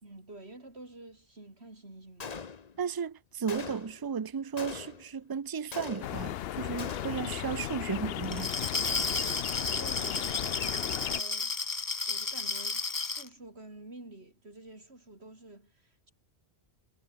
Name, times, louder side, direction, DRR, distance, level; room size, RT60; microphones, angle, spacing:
voice 1, 0.0-2.3 9.6-11.7 12.1-16.1, right 2 dB, 70° right, 5.3 m, -49 dB
Gunshot gunfire, 2.2-2.9 3.5-4.1 4.6-5.2 5.7-6.4 6.8-7.4, left 5 dB, 40° left, 1.0 m, -42 dB
voice 2, 2.8-8.5, right 6 dB, 30° right, 0.4 m, -34 dB
sound 1, 6.0-11.2, left 12 dB, 65° left, 0.7 m, -36 dB
Glass, 8.2-13.3, left 4 dB, 25° left, 0.6 m, -32 dB
omnidirectional pair, 1.1 m